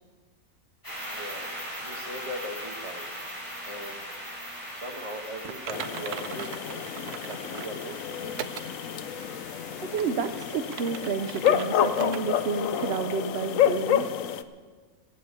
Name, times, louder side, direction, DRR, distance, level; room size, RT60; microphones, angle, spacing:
sound 1, 0.8-12.9, equal, 15° left, 4.8 m, -41 dB
voice 1, 1.1-1.6 1.8-3.1 3.6-4.1 4.8-8.5, equal, 20° right, 2 dB, 1.5 m, -40 dB
Typing, 5.4-7.8 8.4-8.7 9.2-9.3 9.8-11.7 12.0-12.2 12.6-12.7 13.2-13.3, right 10 dB, 85° right, 1.2 m, -39 dB
sound 2, 5.7-14.4, left 10 dB, 65° left, 1.0 m, -29 dB
voice 2, 9.8-14.1, right 5 dB, 55° right, 7 dB, 0.8 m, -30 dB
17.0 x 8.6 x 8.3 m, 1.5 s
omnidirectional pair, 1.6 m